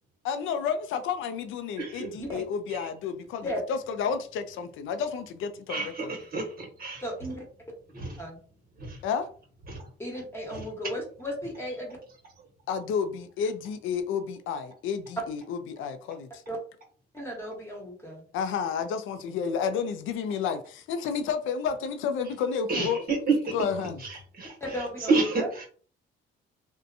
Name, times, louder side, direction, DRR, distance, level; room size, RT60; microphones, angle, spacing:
voice 1, 0.2-6.1 9.0-9.3 12.7-16.4 18.3-23.0 23.5-24.0, left 6 dB, 80° left, 0.4 m, -31 dB
voice 2, 5.7-7.0 7.9-8.2 8.8-9.0 9.7-9.8 10.5-10.6 22.7-23.2 23.4-23.5 24.0-24.5 25.1-25.7, right 3 dB, 50° right, 1.1 m, -30 dB
voice 3, 7.0-7.4 8.2-8.4 10.0-12.0 16.5-16.6 17.1-18.2 24.6-25.5, equal, 10° left, 1.1 m, -35 dB
2.6 x 2.2 x 2.5 m
cardioid pair, 90°, 20 cm